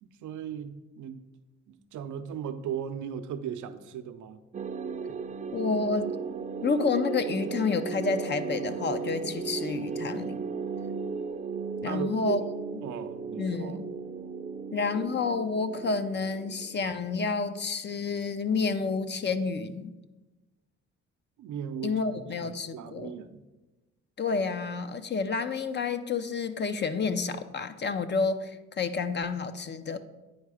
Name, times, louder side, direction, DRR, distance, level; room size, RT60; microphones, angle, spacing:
voice 1, 0.0-1.2 1.7-4.4 11.8-12.4 12.8-13.8 21.4-23.4, right 8 dB, 75° right, 8 dB, 0.7 m, -37 dB
sound 1, 4.5-17.3, right 5 dB, 25° right, 0.4 m, -36 dB
voice 2, 5.5-6.2 6.6-10.4 11.8-12.4 13.4-13.9 14.7-20.0 21.8-23.1 24.2-30.0, left 4 dB, 35° left, 10 dB, 0.6 m, -29 dB
9.4 x 4.6 x 4.9 m, 1.1 s
cardioid pair, 90°, 30 cm